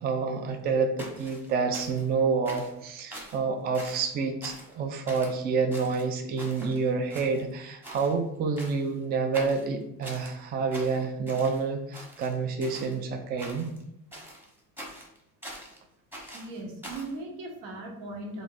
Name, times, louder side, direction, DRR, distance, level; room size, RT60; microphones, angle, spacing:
voice 1, 0.0-13.7, right 4 dB, 30° right, 5 dB, 0.3 m, -28 dB
sound 1, 1.0-2.1 2.5-2.8 3.1-3.4 3.7-4.1 4.4-4.8 5.1-5.4 5.7-6.8 7.1-7.6 7.8-8.1 8.6-8.9 9.3-10.3 10.7-11.6 11.9-13.0 13.4-13.8 14.1-15.8 16.1-17.1, equal, 5° right, 0.9 m, -44 dB
voice 2, 16.3-18.4, right 2 dB, 80° right, 1 dB, 1.1 m, -38 dB
3.6 x 2.6 x 3.8 m, 0.78 s
cardioid pair, 140°, 33 cm